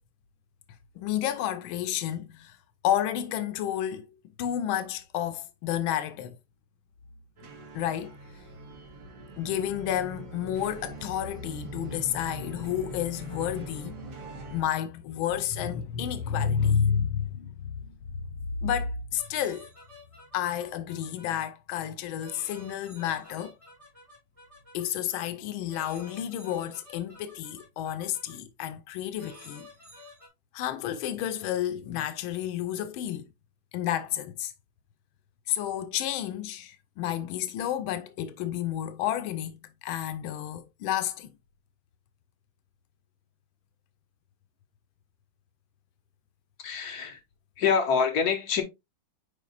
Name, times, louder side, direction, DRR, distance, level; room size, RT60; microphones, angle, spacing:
voice 1, 1.0-2.6 2.8-4.1 4.4-6.4 7.7-8.2 9.4-14.0 14.5-17.7 18.6-19.7 20.3-23.5 24.7-29.7 30.5-33.3 33.7-34.5 35.5-41.3, left 10 dB, 90° left, 1.4 m, -30 dB
sound 1, 7.4-14.6, right 1 dB, 80° right, 2.5 m, -42 dB
sound 2, 19.2-21.4 22.2-24.9 25.7-28.4 29.2-30.3, left 2 dB, 15° right, 3.2 m, -51 dB
voice 2, 46.6-47.2 47.6-48.6, left 6 dB, 55° left, 1.8 m, -26 dB
8.2 x 4.9 x 2.4 m
omnidirectional pair, 2.2 m